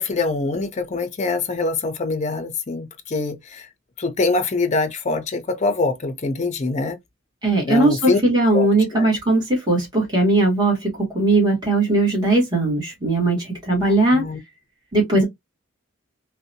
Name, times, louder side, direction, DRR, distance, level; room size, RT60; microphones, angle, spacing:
voice 1, 0.0-3.7 4.0-7.0 7.6-8.2 8.5-9.1 13.8-14.4 15.1-15.2, left 3 dB, 35° left, 0.5 m, -24 dB
voice 2, 7.4-14.2 14.9-15.2, right 2 dB, 20° right, 1.2 m, -19 dB
2.6 x 2.1 x 2.6 m
head